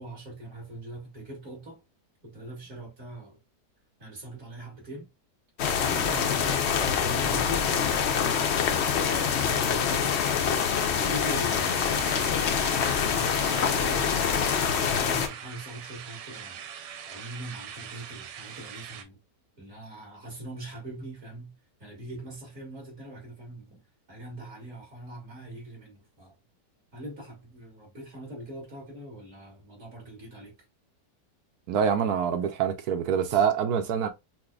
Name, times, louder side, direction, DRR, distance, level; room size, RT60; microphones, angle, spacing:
voice 1, 0.0-1.8 2.2-3.4 4.0-5.1 5.7-8.2 9.1-14.1 14.6-16.6 17.1-19.2 19.6-21.5 21.8-23.8 24.1-26.3 26.9-30.5, right 1 dB, 50° right, 2.2 m, -42 dB
sound 1, 5.6-15.3, left 7 dB, 90° left, 0.5 m, -25 dB
sound 2, 10.0-19.0, right 8 dB, 90° right, 1.3 m, -42 dB
voice 2, 31.7-34.1, right 7 dB, 70° right, 1.0 m, -25 dB
5.8 x 2.1 x 2.2 m
omnidirectional pair, 1.8 m